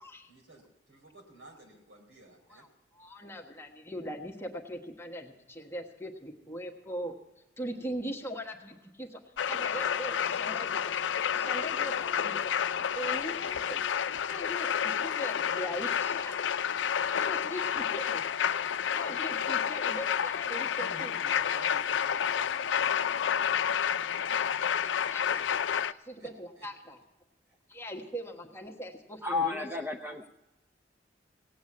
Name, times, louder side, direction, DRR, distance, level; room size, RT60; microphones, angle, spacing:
voice 1, 0.3-2.7 20.6-24.6 26.2-26.3 26.6-26.7, right 2 dB, 85° right, 1 dB, 4.1 m, -52 dB
voice 2, 2.9-7.2 7.6-9.2 9.5-11.0 11.3-12.5 12.9-13.8 14.3-16.5 17.1-18.2 18.9-21.1 25.1-25.4 25.7-27.0 27.7-29.8, equal, 15° left, 0 dB, 1.3 m, -40 dB
sound 1, 9.4-25.9, left 8 dB, 70° left, 0.4 m, -30 dB
voice 3, 29.2-30.3, left 3 dB, 10° right, 2 dB, 0.7 m, -32 dB
17.5 x 8.4 x 8.4 m, 0.99 s
head